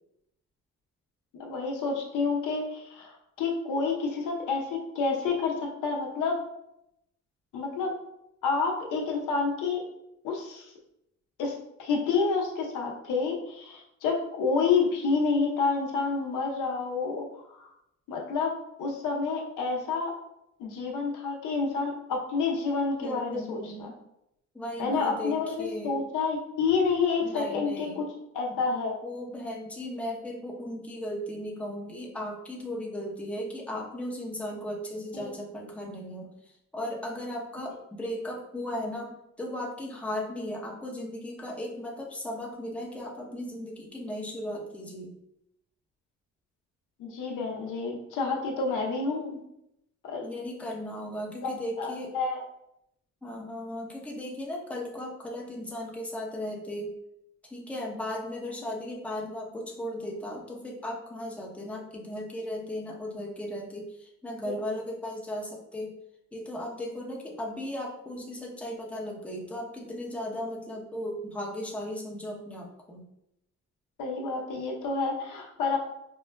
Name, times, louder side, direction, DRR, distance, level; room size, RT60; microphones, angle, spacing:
voice 1, 1.4-6.4 7.5-8.0 8.4-9.8 10.2-10.7 11.4-17.7 18.1-20.1 20.6-23.9 24.8-28.1 28.3-28.9 35.1-35.3 47.0-49.4 50.0-50.3 51.4-51.5 51.8-52.4 64.4-64.5 74.0-75.8, left 4 dB, 90° left, 0 dB, 0.7 m, -29 dB
voice 2, 23.0-24.0 24.5-26.0 27.2-28.0 28.5-28.6 29.0-36.3 36.7-45.1 50.2-52.1 53.2-56.9 57.4-66.0 66.3-73.1, left 1 dB, 5° left, -2 dB, 0.7 m, -36 dB
5.2 x 2.2 x 2.2 m, 0.82 s
cardioid pair, 90°, 30 cm